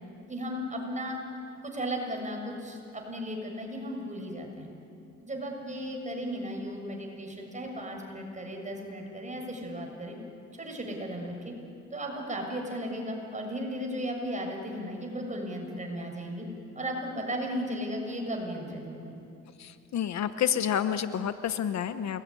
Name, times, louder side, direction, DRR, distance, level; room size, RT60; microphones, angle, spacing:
voice 1, 0.3-1.2 1.6-4.7 5.2-10.2 10.5-11.5 11.9-16.5 16.7-19.2, equal, 25° right, 1 dB, 7.0 m, -35 dB
voice 2, 19.6-22.2, left 9 dB, 65° left, 11 dB, 1.0 m, -29 dB
29.0 x 20.5 x 9.9 m, 2.8 s
cardioid pair, 90°, 30 cm